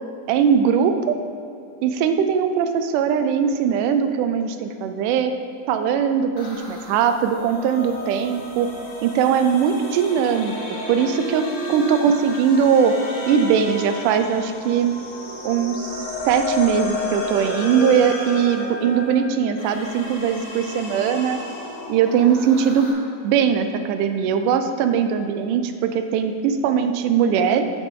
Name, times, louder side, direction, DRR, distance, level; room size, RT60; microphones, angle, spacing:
voice 1, 0.3-1.2 1.8-5.3 5.7-8.7 9.0-10.6 10.9-12.9 13.3-15.0 15.4-21.4 21.9-22.9 23.2-27.6, right 7 dB, 90° right, 8 dB, 2.1 m, -20 dB
sound 1, 6.4-22.9, left 1 dB, 80° left, 3.1 m, -32 dB
8.9 x 8.3 x 3.7 m, 2.6 s
omnidirectional pair, 3.6 m